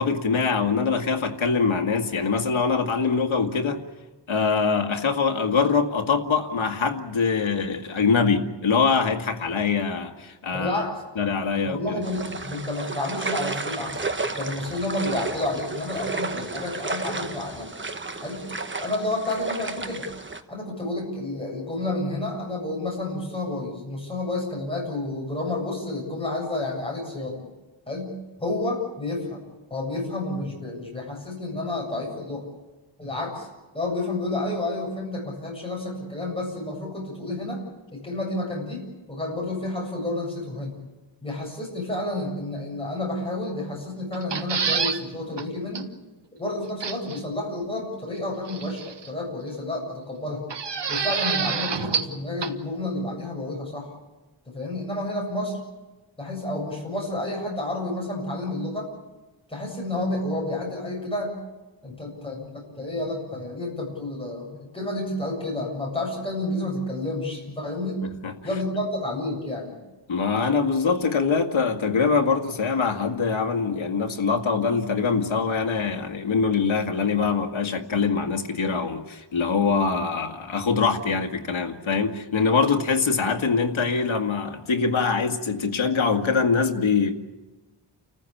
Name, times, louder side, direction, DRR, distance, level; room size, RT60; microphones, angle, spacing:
voice 1, 0.0-3.8 4.3-10.7 11.2-11.8 68.0-68.3 70.1-87.1, left 5 dB, 80° left, 2.1 m, -23 dB
voice 2, 10.5-11.0 11.6-14.0 14.4-17.7 18.2-18.4 18.8-20.0 20.5-27.4 27.9-28.1 28.4-29.4 29.7-32.4 33.0-37.6 37.9-40.7 41.2-45.9 46.4-50.4 50.9-53.9 54.5-55.6 56.2-58.9 59.5-61.4 61.8-68.0 68.4-69.8, left 2 dB, 10° left, 7.7 m, -30 dB
sound 1, 12.0-20.4, right 3 dB, 25° right, 1.2 m, -32 dB
sound 2, 44.1-45.0 45.4-45.5 45.7-45.8 46.8-47.2 48.5-49.1 50.5-52.1 52.4-52.5, right 6 dB, 60° right, 1.4 m, -27 dB
30.0 x 15.0 x 8.6 m
wide cardioid pair, 155°, 47 cm